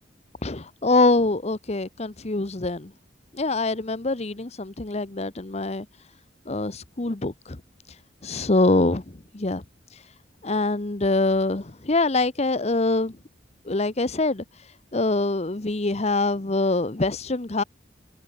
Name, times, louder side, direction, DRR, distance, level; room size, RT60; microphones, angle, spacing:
voice 1, 0.4-2.9 3.3-5.9 6.5-7.6 7.9-9.6 9.9-10.1 10.4-13.2 13.6-17.6, left 2 dB, 35° left, 1.0 m, -24 dB
head